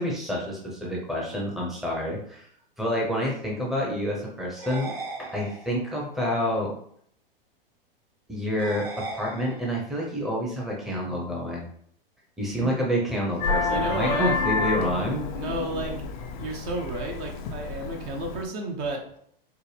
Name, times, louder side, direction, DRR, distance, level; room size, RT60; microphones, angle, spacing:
voice 1, 0.0-2.5 2.8-4.9 5.2-6.7 8.3-11.7 12.4-15.2, equal, ahead, -3 dB, 0.8 m, -28 dB
sound 1, 4.6-6.0 8.6-10.0, right 3 dB, 65° right, 1.3 m, -38 dB
Vehicle horn car horn honking, 13.4-18.4, left 4 dB, 50° left, 0.5 m, -29 dB
voice 2, 13.7-14.4 15.3-16.0 16.4-19.2, right 2 dB, 40° right, 2 dB, 0.8 m, -32 dB
4.6 x 2.1 x 3.3 m, 0.64 s
hypercardioid pair, 110°, 29 cm